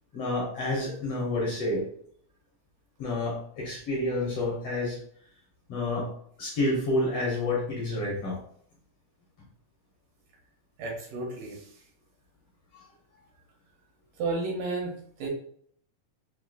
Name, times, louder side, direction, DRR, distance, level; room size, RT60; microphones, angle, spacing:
voice 1, 0.1-1.8 3.0-5.0 5.7-6.1 6.4-8.4, left 2 dB, 60° left, -4 dB, 1.8 m, -29 dB
voice 2, 10.8-11.6 14.2-15.3, right 3 dB, 75° right, -1 dB, 2.6 m, -32 dB
6.1 x 3.1 x 2.3 m, 0.63 s
omnidirectional pair, 3.8 m